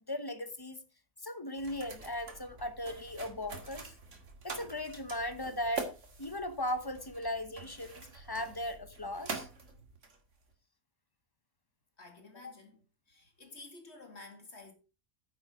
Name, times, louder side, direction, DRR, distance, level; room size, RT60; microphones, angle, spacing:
voice 1, 0.1-0.8 1.2-3.9 4.4-5.9 6.2-9.5, left 1 dB, 20° left, 0.8 m, -37 dB
sound 1, 1.6-10.5, right 3 dB, 55° right, 2.2 m, -45 dB
voice 2, 12.0-12.8 13.1-14.7, left 3 dB, 45° left, 2.5 m, -51 dB
9.4 x 7.8 x 5.0 m
omnidirectional pair, 1.5 m